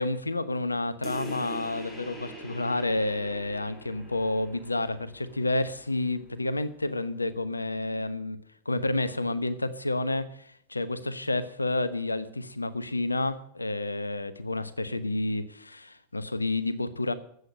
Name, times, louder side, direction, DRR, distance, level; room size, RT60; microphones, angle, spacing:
voice 1, 0.0-8.4 8.6-17.1, left 2 dB, 80° left, 15 dB, 1.0 m, -30 dB
sound 1, 1.0-6.1, right 1 dB, 15° left, 4.2 m, -43 dB
14.5 x 8.1 x 8.7 m, 0.67 s
figure-of-eight pair, 90°, 0 cm